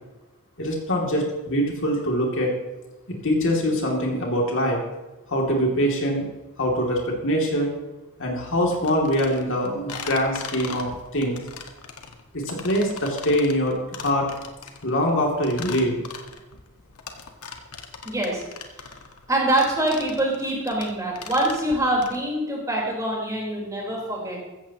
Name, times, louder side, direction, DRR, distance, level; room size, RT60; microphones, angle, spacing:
voice 1, 0.6-2.5 3.2-4.8 5.3-6.3 6.6-7.7 8.2-11.4 12.3-14.3 14.8-16.0, equal, 60° left, -1 dB, 2.7 m, -23 dB
sound 1, 8.7-22.2, left 5 dB, 85° left, 1.6 m, -39 dB
voice 2, 18.0-18.4 19.3-24.4, right 1 dB, 15° right, -3 dB, 4.3 m, -24 dB
15.5 x 14.5 x 3.0 m, 1.1 s
head